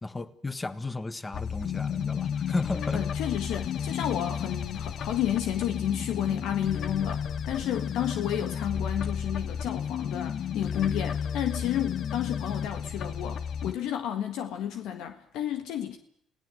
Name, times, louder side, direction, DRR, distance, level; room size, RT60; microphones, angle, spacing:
voice 1, 0.0-3.0, left 3 dB, 20° left, 1.6 m, -34 dB
sound 1, 1.3-13.7, left 7 dB, 60° left, 1.2 m, -32 dB
voice 2, 2.9-16.0, left 10 dB, 80° left, 1.7 m, -31 dB
29.0 x 17.0 x 7.9 m
cardioid pair, 90°, 0 cm